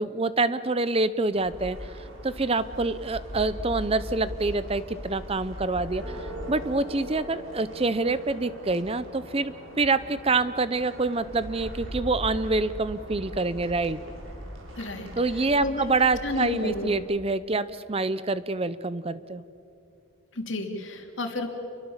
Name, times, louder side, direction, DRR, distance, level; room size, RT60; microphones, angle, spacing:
voice 1, 0.0-1.9 2.2-14.0 15.2-19.4, right 3 dB, 25° right, 14 dB, 0.6 m, -26 dB
sound 1, 1.3-17.0, equal, 75° right, 6.9 m, -40 dB
voice 2, 14.7-15.1 15.6-15.8 16.2-16.9 20.3-21.5, left 2 dB, 60° left, 3 dB, 3.2 m, -31 dB
29.0 x 23.0 x 7.3 m, 2.7 s
head